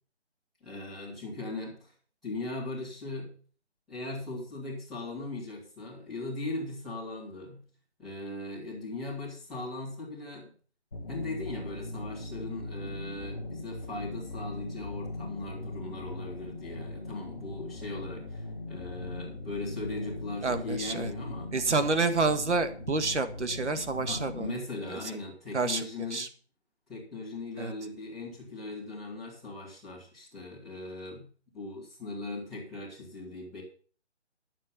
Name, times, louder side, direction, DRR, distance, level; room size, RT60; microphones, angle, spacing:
voice 1, 0.6-1.9 2.2-3.3 3.9-7.6 8.0-10.5 11.1-21.5 24.1-26.3 26.9-31.3 31.5-33.6, left 2 dB, ahead, -13 dB, 1.6 m, -39 dB
sound 1, 10.9-24.5, left 2 dB, 15° left, 1.0 m, -40 dB
voice 2, 20.4-21.1 21.5-24.6 24.9-25.0 25.5-26.3 27.6-27.7, right 3 dB, 85° right, 10 dB, 1.6 m, -29 dB
11.0 x 7.6 x 5.6 m, 0.42 s
hypercardioid pair, 175°, 34 cm